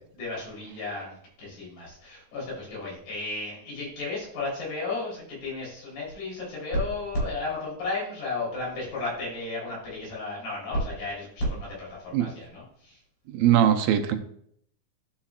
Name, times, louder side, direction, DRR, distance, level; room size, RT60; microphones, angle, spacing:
voice 1, 0.1-13.0, left 2 dB, 75° left, -5 dB, 5.5 m, -33 dB
voice 2, 13.3-14.2, right 10 dB, 80° right, 6 dB, 2.4 m, -21 dB
13.0 x 5.7 x 2.4 m, 0.68 s
omnidirectional pair, 4.2 m